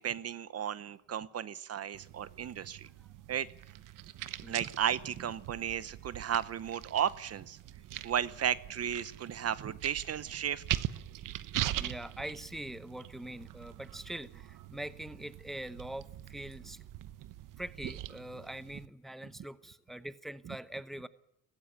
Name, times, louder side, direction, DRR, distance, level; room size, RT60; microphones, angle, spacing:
voice 1, 0.0-2.9 3.3-3.5 4.5-7.6 8.0-10.8, right 9 dB, 45° right, 17 dB, 0.9 m, -34 dB
sound 1, 1.9-18.9, right 13 dB, 70° right, 1.0 m, -42 dB
voice 2, 4.2-4.7 11.8-16.8 17.6-21.1, right 1 dB, ahead, 14 dB, 0.9 m, -43 dB
18.0 x 16.0 x 10.0 m, 0.78 s
cardioid pair, 110°, 33 cm